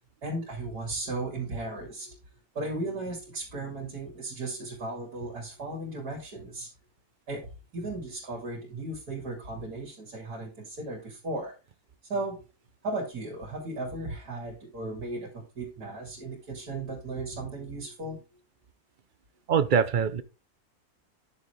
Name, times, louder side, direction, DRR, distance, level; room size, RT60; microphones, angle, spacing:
voice 1, 0.2-2.2 2.5-6.7 7.3-11.5 12.1-12.4 12.8-18.2, right 2 dB, 85° right, 3.2 m, -36 dB
voice 2, 19.5-20.2, right 7 dB, 50° right, 0.6 m, -23 dB
10.0 x 6.7 x 3.3 m
omnidirectional pair, 1.6 m